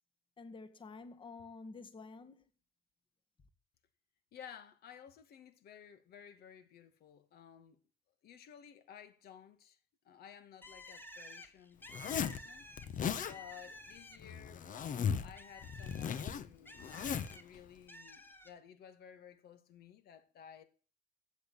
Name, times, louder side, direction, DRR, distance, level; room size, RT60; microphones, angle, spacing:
voice 1, 0.4-2.5, left 3 dB, 30° left, 1.7 m, -50 dB
voice 2, 4.3-7.8 8.2-9.8 10.0-11.8 12.2-12.7 13.2-16.8 17.3-20.6, left 8 dB, 70° left, 2.4 m, -55 dB
Bird, 10.6-14.4 14.8-17.4 17.9-18.5, left 1 dB, 10° left, 2.1 m, -52 dB
Zipper (clothing), 11.9-12.4 12.8-13.3 14.2-15.3 15.6-17.4, left 7 dB, 50° left, 1.3 m, -37 dB
14.0 x 8.6 x 8.4 m
cardioid pair, 110°, 17 cm